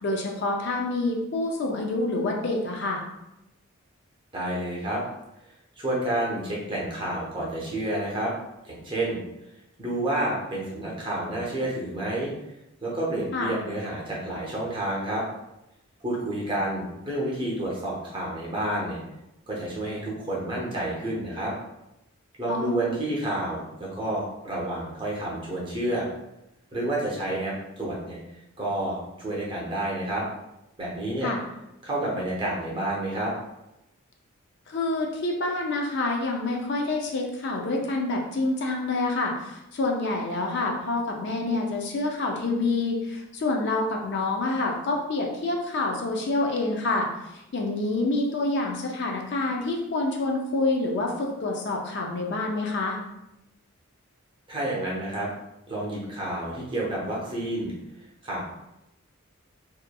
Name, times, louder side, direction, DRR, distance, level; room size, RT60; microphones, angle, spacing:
voice 1, 0.0-3.0 13.3-13.5 22.5-22.8 31.2-31.4 34.7-47.1 47.5-53.0, left 2 dB, 50° left, 1 dB, 0.4 m, -27 dB
voice 2, 4.3-5.0 5.8-8.3 8.6-9.2 9.8-12.3 12.8-15.2 16.0-19.0 19.5-21.5 22.4-26.1 26.7-28.2 28.6-30.2 30.8-31.3 31.8-33.3 54.5-55.3 55.7-57.7 58.2-58.4, right 1 dB, 20° right, -4 dB, 0.6 m, -29 dB
2.8 x 2.4 x 2.2 m, 0.89 s
head